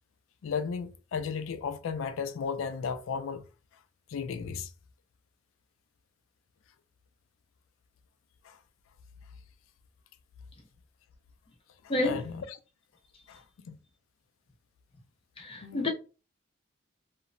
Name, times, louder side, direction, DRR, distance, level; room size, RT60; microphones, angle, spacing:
voice 1, 0.4-3.5 4.1-4.7 8.4-8.6 11.8-12.6 13.3-13.8 15.6-15.9, left 6 dB, 80° left, 0.4 m, -35 dB
voice 2, 11.9-12.2 15.4-15.9, left 2 dB, 30° left, 0.5 m, -29 dB
2.9 x 2.0 x 2.5 m
head